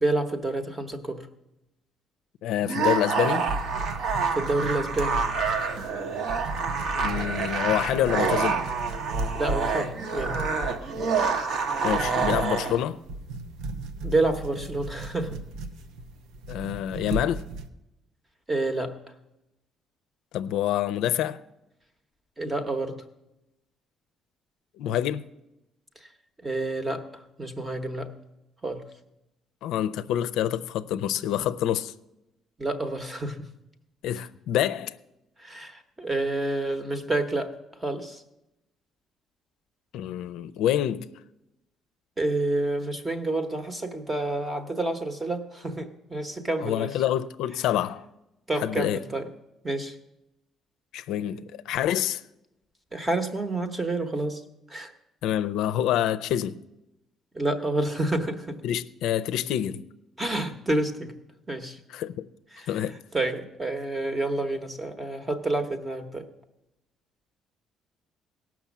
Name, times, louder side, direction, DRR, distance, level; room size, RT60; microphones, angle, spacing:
voice 1, 0.0-1.2 4.3-5.2 9.3-10.4 14.0-15.4 18.5-18.9 22.4-23.0 26.4-27.0 27.4-28.1 28.6-28.8 32.6-33.5 35.4-37.5 37.8-38.2 42.2-46.9 48.5-49.3 49.6-49.9 52.9-54.4 54.7-54.9 57.3-58.6 60.2-61.1 61.5-61.8 62.5-62.7 63.1-66.3, right 2 dB, 15° right, 0.9 m, -28 dB
voice 2, 2.4-3.5 7.0-8.6 11.8-13.0 16.5-17.4 20.3-21.4 24.8-25.3 29.6-31.9 34.0-35.0 39.9-41.1 46.6-48.1 48.6-49.0 50.9-52.2 55.2-56.6 58.6-59.9 61.9-62.3 62.7-63.0, left 11 dB, 80° left, 0.4 m, -27 dB
sound 1, 2.6-12.8, right 5 dB, 50° right, 1.1 m, -27 dB
sound 2, 3.4-17.7, right 2 dB, 90° right, 0.8 m, -36 dB
17.5 x 6.1 x 7.2 m
cardioid pair, 165°, 0 cm